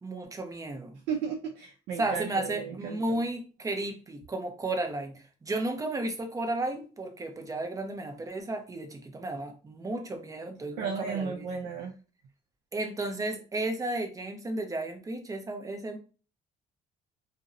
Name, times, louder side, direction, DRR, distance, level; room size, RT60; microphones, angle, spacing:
voice 1, 0.0-1.0 2.0-5.1 5.4-11.5 12.7-16.0, right 2 dB, 20° right, 0.5 m, -33 dB
voice 2, 1.1-3.2 10.8-11.9, right 6 dB, 80° right, 0.4 m, -34 dB
2.5 x 2.0 x 2.5 m
cardioid pair, 110°, 17 cm